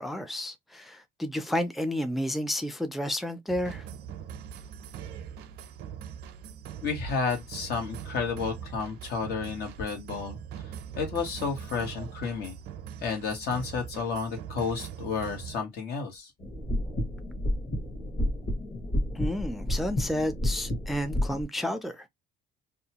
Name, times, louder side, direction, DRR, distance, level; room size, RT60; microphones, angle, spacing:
voice 1, 0.0-3.8 19.1-22.1, left 1 dB, ahead, 0.4 m, -31 dB
sound 1, 3.5-15.6, right 8 dB, 80° right, 0.5 m, -41 dB
voice 2, 6.8-10.4 10.9-12.6 13.0-16.3, left 5 dB, 75° left, 1.4 m, -31 dB
sound 2, 16.4-21.4, left 1 dB, 35° left, 1.2 m, -30 dB
2.7 x 2.3 x 2.8 m
cardioid pair, 110°, 17 cm